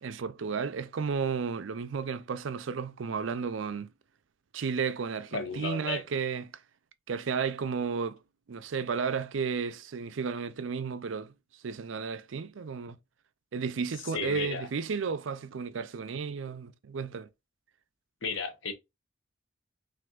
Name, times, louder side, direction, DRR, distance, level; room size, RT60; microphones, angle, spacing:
voice 1, 0.0-3.9 4.5-6.5 7.1-8.2 8.5-11.3 11.6-13.0 13.5-17.3, right 5 dB, 70° right, 0.5 m, -33 dB
voice 2, 5.3-6.0 14.1-14.7 18.2-18.7, left 4 dB, 70° left, 1.0 m, -33 dB
6.1 x 2.6 x 2.4 m
head